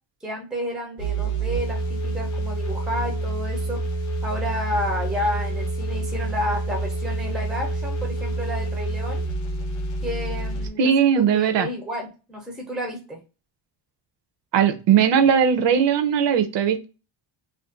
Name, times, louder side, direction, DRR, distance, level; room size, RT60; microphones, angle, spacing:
voice 1, 0.2-3.8 4.2-9.2 10.0-13.2, left 1 dB, ahead, 1 dB, 0.4 m, -31 dB
sound 1, 1.0-10.7, right 2 dB, 40° left, 0.7 m, -27 dB
voice 2, 10.8-11.7 14.5-16.8, right 8 dB, 65° right, 9 dB, 0.5 m, -19 dB
2.5 x 2.1 x 2.3 m, 0.32 s
cardioid pair, 165°, 47 cm